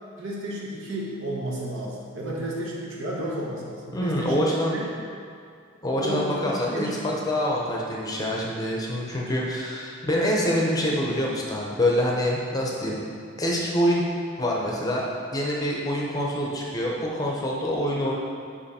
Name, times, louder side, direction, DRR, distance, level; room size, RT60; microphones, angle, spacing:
voice 1, 0.2-4.9 5.9-6.9, right 1 dB, 65° right, -4 dB, 1.2 m, -32 dB
voice 2, 3.9-4.8 5.8-13.0 13.4-14.0 14.4-15.0 15.3-18.1, equal, 20° left, -3 dB, 0.7 m, -25 dB
5.6 x 5.0 x 4.2 m, 2.3 s
head